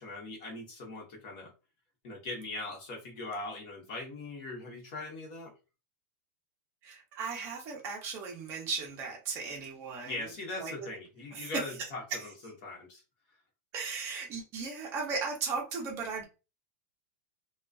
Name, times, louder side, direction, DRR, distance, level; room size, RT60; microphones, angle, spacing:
voice 1, 0.0-1.5 2.0-5.5 10.0-13.0, left 2 dB, 40° left, 0 dB, 1.0 m, -40 dB
voice 2, 6.8-10.3 10.6-10.9 11.3-12.3 13.7-16.3, right 4 dB, 30° right, 0 dB, 0.6 m, -36 dB
2.4 x 2.3 x 2.3 m, 0.30 s
supercardioid pair, 165°, 9 cm